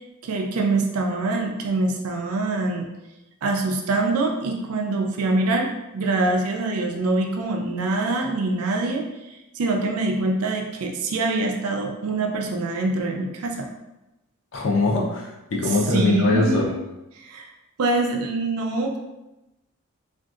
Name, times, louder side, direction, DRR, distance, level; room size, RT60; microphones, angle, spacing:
voice 1, 0.2-2.9 3.4-5.7 5.9-9.0 9.6-13.7 15.7-16.7 17.2-17.5 17.8-19.0, right 2 dB, 80° right, 2 dB, 0.4 m, -24 dB
voice 2, 14.5-16.7, left 2 dB, 55° left, -1 dB, 0.6 m, -22 dB
3.7 x 2.4 x 2.4 m, 0.97 s
head